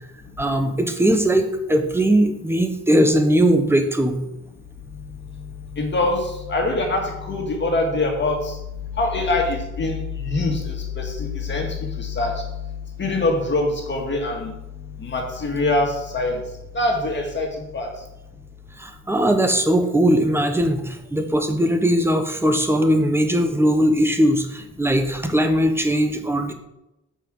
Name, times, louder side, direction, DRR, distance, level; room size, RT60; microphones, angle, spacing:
voice 1, 0.4-4.2 18.8-26.5, right 1 dB, 10° right, 7 dB, 1.2 m, -19 dB
voice 2, 5.8-6.2 6.5-8.6 9.0-11.7 12.0-12.3 13.0-14.5 15.0-16.4 16.7-17.5 17.7-17.9, left 2 dB, 40° left, 0 dB, 2.0 m, -23 dB
7.2 x 5.7 x 6.2 m, 0.91 s
cardioid pair, 90°, 30 cm